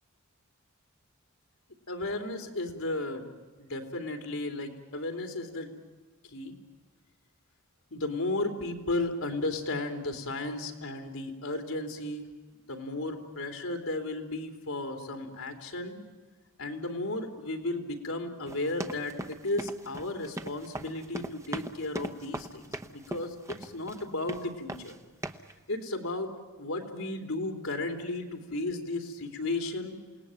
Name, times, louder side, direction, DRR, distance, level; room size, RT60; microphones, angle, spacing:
voice 1, 1.9-3.3 3.6-5.7 6.3-6.5 7.9-12.3 12.7-16.0 16.6-25.0 25.7-26.3 26.6-29.9, left 2 dB, 70° left, 5 dB, 3.2 m, -34 dB
sound 1, 18.5-24.0 24.3-25.0 25.2-25.5, right 1 dB, 15° right, 0.9 m, -39 dB
28.5 x 19.0 x 9.0 m, 1.3 s
head